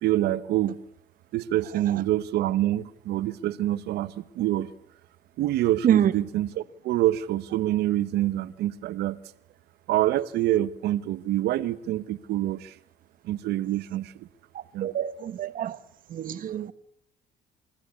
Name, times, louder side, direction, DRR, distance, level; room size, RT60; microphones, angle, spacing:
voice 1, 0.0-0.8 1.3-4.7 5.4-9.2 9.9-12.7 13.2-14.3 14.7-14.9, right 14 dB, 75° right, 1.1 m, -26 dB
voice 2, 14.8-15.8 16.1-16.7, right 10 dB, 55° right, 1.4 m, -25 dB
24.0 x 15.5 x 8.5 m
cardioid pair, 110°, 17 cm